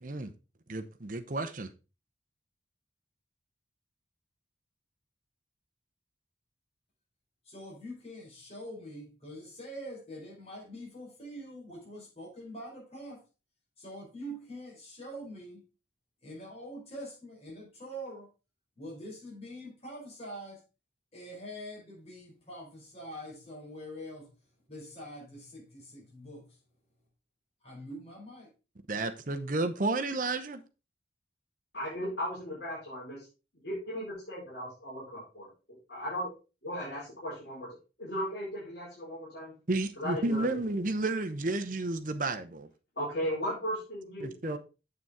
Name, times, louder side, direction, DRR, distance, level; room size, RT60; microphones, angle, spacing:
voice 1, 0.0-0.3 0.7-1.7 28.9-30.6 39.7-42.7 44.2-44.6, right 2 dB, 45° right, 0.8 m, -32 dB
voice 2, 7.4-13.2 13.8-15.6 16.2-18.3 18.8-20.6 21.1-24.3 24.7-26.6 27.6-28.5, equal, 35° left, 4.3 m, -44 dB
voice 3, 31.7-33.3 33.6-35.5 35.9-36.3 36.6-37.7 38.0-39.5 40.0-40.6 43.0-44.6, equal, 60° left, 4.6 m, -36 dB
7.8 x 6.8 x 3.6 m
head